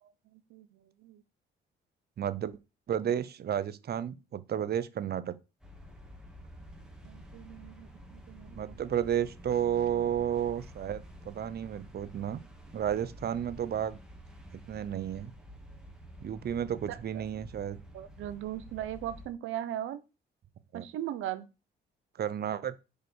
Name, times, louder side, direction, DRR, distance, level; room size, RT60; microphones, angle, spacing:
voice 1, 0.0-1.2 7.0-8.7 16.9-17.2 17.9-20.0 20.7-21.5, right 12 dB, 85° right, 0.9 m, -39 dB
voice 2, 2.2-2.6 2.9-5.4 8.5-12.4 12.7-14.0 14.7-15.3 16.2-17.8 20.7-20.8 22.2-22.7, right 9 dB, 55° right, 0.8 m, -32 dB
sound 1, 5.6-19.3, equal, 5° right, 2.4 m, -50 dB
6.6 x 5.1 x 4.6 m
cardioid pair, 90°, 20 cm